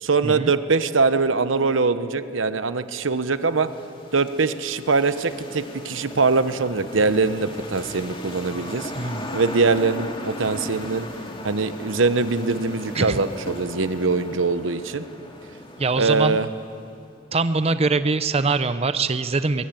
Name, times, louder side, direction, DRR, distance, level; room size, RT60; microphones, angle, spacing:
voice 1, 0.0-3.7 4.1-8.9 9.3-11.1 11.4-15.0 16.0-16.5, right 4 dB, 90° right, 12 dB, 1.0 m, -22 dB
sound 1, 2.6-17.1, left 1 dB, 30° left, 2.3 m, -38 dB
voice 2, 8.9-9.3 12.9-13.2 15.8-16.4 17.3-19.7, right 3 dB, 30° right, 12 dB, 0.7 m, -23 dB
22.0 x 21.5 x 9.0 m, 2.5 s
head